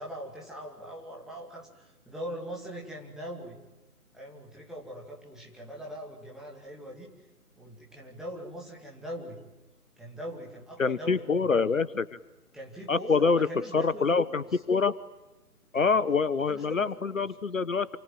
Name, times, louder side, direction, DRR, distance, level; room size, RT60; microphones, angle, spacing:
voice 1, 0.0-3.6 4.1-7.1 7.6-9.4 10.0-11.7 12.5-14.5 15.7-17.3, equal, ahead, -3 dB, 2.3 m, -41 dB
voice 2, 10.8-12.1 12.9-13.5 13.7-14.9 15.7-18.0, left 4 dB, 60° left, 16 dB, 1.1 m, -25 dB
28.0 x 27.0 x 7.7 m, 1.1 s
figure-of-eight pair, 145°, 46 cm